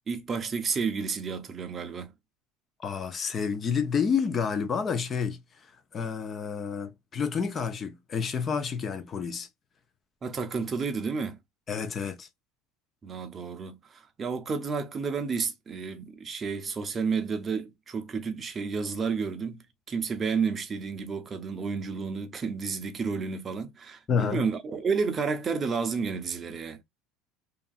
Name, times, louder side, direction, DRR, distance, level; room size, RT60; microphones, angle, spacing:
voice 1, 0.1-2.1 10.2-11.4 13.0-26.8, right 5 dB, 30° right, 0.6 m, -31 dB
voice 2, 2.8-5.4 5.9-9.5 11.7-12.3 24.1-24.4, left 6 dB, 35° left, 0.6 m, -29 dB
2.7 x 2.5 x 2.4 m
supercardioid pair, 110°, 0 cm